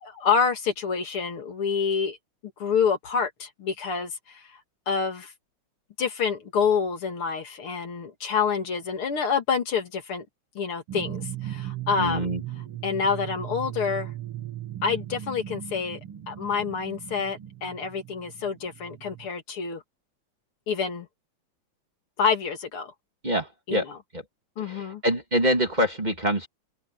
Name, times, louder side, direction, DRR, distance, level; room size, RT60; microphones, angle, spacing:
voice 1, 0.0-2.2 2.6-4.6 4.9-5.3 6.0-10.2 10.5-12.4 12.8-14.1 14.8-16.0 16.3-19.8 20.7-21.1 22.2-22.9 23.7-24.0 24.6-25.0, left 6 dB, 85° left, 3.5 m, -27 dB
sound 1, 10.9-19.3, right 12 dB, 85° right, 2.9 m, -37 dB
voice 2, 12.0-12.4 23.2-23.9 24.1-24.2 24.7-26.5, equal, 20° right, 2.8 m, -25 dB
omnidirectional pair, 2.3 m